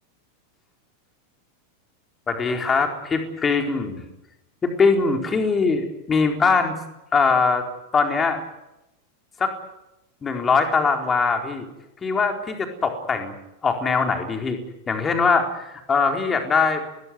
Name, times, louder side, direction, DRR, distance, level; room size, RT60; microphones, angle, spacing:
voice 1, 2.3-4.0 4.6-6.7 7.1-7.7 7.9-8.4 9.4-9.5 10.2-11.7 12.0-13.3 13.6-14.6 14.9-16.8, left 4 dB, 20° left, 4 dB, 4.2 m, -21 dB
22.0 x 20.0 x 9.5 m, 0.91 s
figure-of-eight pair, 90°, 0 cm